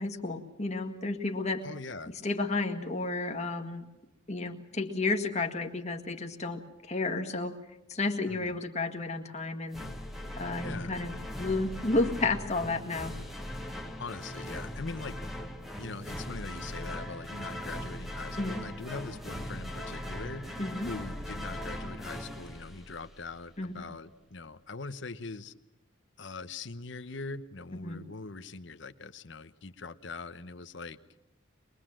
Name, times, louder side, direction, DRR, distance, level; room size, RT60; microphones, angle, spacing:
voice 1, 0.0-1.6 2.2-3.9 4.3-7.6 7.9-9.8 10.4-13.1 18.4-18.6 20.6-20.9 23.6-23.8 27.8-28.0, left 3 dB, 35° left, 4 dB, 1.8 m, -32 dB
voice 2, 1.6-2.1 8.3-8.6 10.6-11.0 14.0-15.2 15.8-20.5 20.8-25.5 26.2-31.0, left 3 dB, 60° left, 11 dB, 1.0 m, -42 dB
sound 1, 9.7-23.4, left 1 dB, ahead, 1.5 m, -39 dB
23.0 x 22.5 x 7.6 m, 0.98 s
head